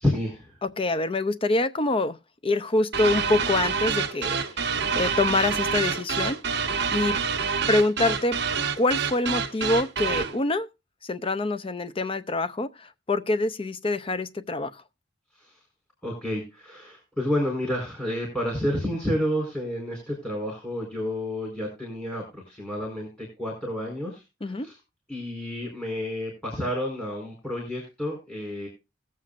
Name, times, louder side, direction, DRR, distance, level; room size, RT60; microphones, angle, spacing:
voice 1, 0.0-0.6 15.4-15.6 16.0-24.8 25.1-28.7, left 1 dB, 5° left, 4.2 m, -30 dB
voice 2, 0.6-2.2 2.4-4.7 5.0-6.4 6.9-7.2 7.7-8.4 8.8-10.7 11.0-14.8 24.4-24.7, left 2 dB, 30° left, 0.6 m, -25 dB
sound 1, 2.9-10.4, right 6 dB, 60° right, 1.1 m, -27 dB
20.0 x 7.5 x 2.5 m
head